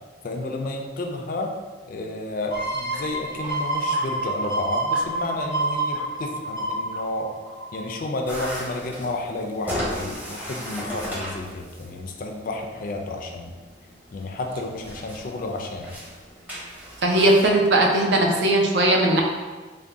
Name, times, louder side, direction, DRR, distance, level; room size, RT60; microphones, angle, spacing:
voice 1, 0.2-1.5 1.9-7.3 7.7-13.5 14.1-15.9, left 2 dB, 50° left, 2 dB, 0.4 m, -31 dB
sound 1, 2.5-8.0 8.4-8.5, right 2 dB, 30° right, 1.0 m, -28 dB
sound 2, 8.2-17.5, equal, 10° right, 0.7 m, -36 dB
voice 2, 17.0-19.2, right 1 dB, 65° right, 1 dB, 0.5 m, -18 dB
3.4 x 2.2 x 3.7 m, 1.4 s
head